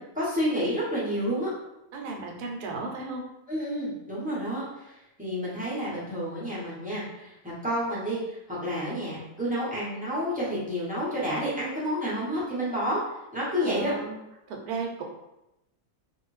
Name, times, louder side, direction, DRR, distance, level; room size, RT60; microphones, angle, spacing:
voice 1, 0.0-1.5 3.5-13.0 13.3-13.9, equal, 10° right, -9 dB, 0.6 m, -30 dB
voice 2, 1.9-3.2 13.6-14.2 14.5-15.0, right 4 dB, 75° right, 1 dB, 1.1 m, -34 dB
2.5 x 2.4 x 3.1 m, 0.91 s
omnidirectional pair, 1.7 m